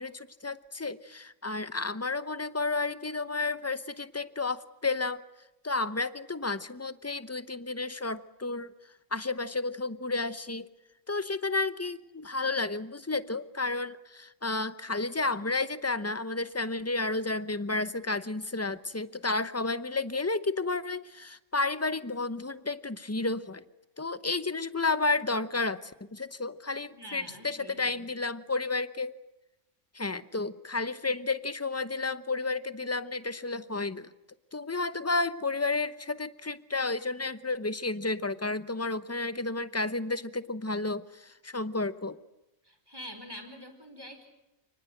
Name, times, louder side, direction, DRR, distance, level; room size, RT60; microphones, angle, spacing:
voice 1, 0.0-5.2 5.6-8.7 9.1-10.7 11.1-23.6 24.0-29.2 29.9-34.1 34.5-42.2, left 3 dB, 15° left, 14 dB, 0.8 m, -31 dB
voice 2, 26.9-28.1 42.6-44.3, equal, 15° right, 6 dB, 4.8 m, -45 dB
28.5 x 20.0 x 7.9 m, 0.94 s
omnidirectional pair, 1.3 m